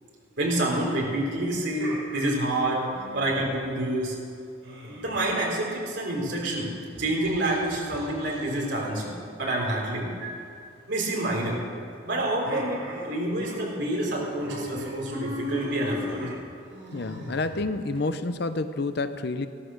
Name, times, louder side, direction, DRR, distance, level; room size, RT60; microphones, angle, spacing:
voice 1, 0.4-2.8 3.1-4.2 4.8-6.7 7.0-10.1 10.9-11.6 12.0-16.2, right 1 dB, 60° right, -2 dB, 3.9 m, -28 dB
sound 1, 1.6-3.6 4.6-6.0 6.9-8.6 10.2-10.6 12.4-13.7 14.0-14.1 14.4-18.0, left 1 dB, 85° right, 5.0 m, -39 dB
voice 2, 16.9-19.5, left 3 dB, 55° left, 11 dB, 0.6 m, -29 dB
15.5 x 12.5 x 6.4 m, 2.3 s
head